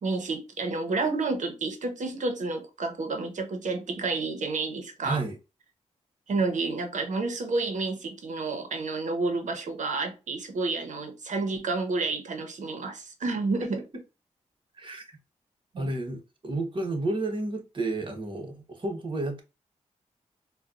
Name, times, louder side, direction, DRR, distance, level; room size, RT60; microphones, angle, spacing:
voice 1, 0.0-5.2 6.3-13.8 15.7-15.9, right 3 dB, 75° right, 0.9 m, -30 dB
voice 2, 5.0-5.3 13.6-13.7 14.8-15.0 15.8-19.4, right 2 dB, 40° right, 1.2 m, -31 dB
4.1 x 2.3 x 2.5 m
cardioid pair, 55°, 13 cm